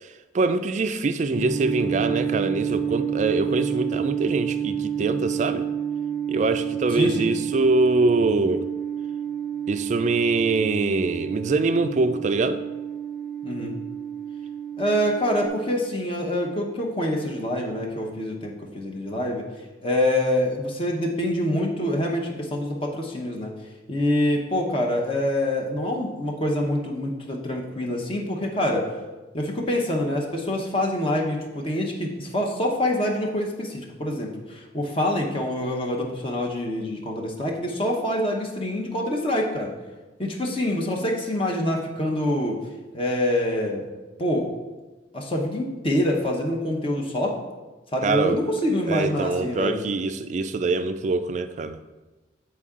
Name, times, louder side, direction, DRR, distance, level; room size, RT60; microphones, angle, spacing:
voice 1, 0.3-5.7 6.3-8.7 9.7-12.6 48.0-48.4 48.9-51.8, right 3 dB, 40° right, 0.3 m, -24 dB
sound 1, 1.3-15.5, right 8 dB, 5° right, 0.9 m, -29 dB
voice 2, 6.9-7.3 13.4-13.8 14.8-19.5 19.8-23.5 23.9-28.9 29.3-39.7 40.2-42.6 42.9-43.8 44.2-44.5 45.1-47.4 47.9-49.8, left 1 dB, 30° left, 0.8 m, -26 dB
8.3 x 4.5 x 3.7 m
head